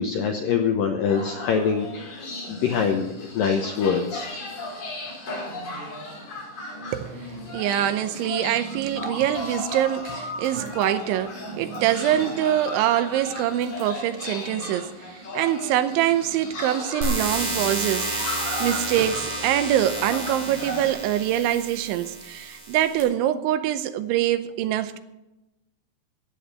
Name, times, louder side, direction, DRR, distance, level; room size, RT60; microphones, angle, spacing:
voice 1, 0.0-4.3 11.9-12.1, left 6 dB, 80° left, 2.0 m, -25 dB
sound 1, 1.1-20.9, left 1 dB, 45° left, 6.1 m, -35 dB
voice 2, 6.9-25.0, right 11 dB, 85° right, 3.2 m, -24 dB
sound 2, 17.0-23.0, right 2 dB, 40° right, 4.4 m, -31 dB
15.0 x 9.3 x 6.7 m
omnidirectional pair, 5.3 m